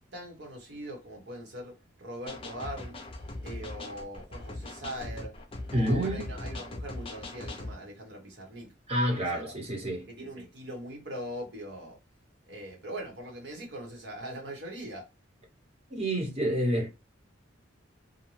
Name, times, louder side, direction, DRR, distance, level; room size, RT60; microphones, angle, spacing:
voice 1, 0.1-3.0 3.4-5.3 5.7-8.7 9.1-9.6 10.0-12.0 12.5-15.1, right 1 dB, 60° right, 1.1 m, -41 dB
sound 1, 2.3-7.8, left 2 dB, 30° left, 0.5 m, -40 dB
voice 2, 5.7-6.2 8.9-10.1 15.9-16.9, equal, 30° right, 1.0 m, -28 dB
2.6 x 2.2 x 3.0 m
head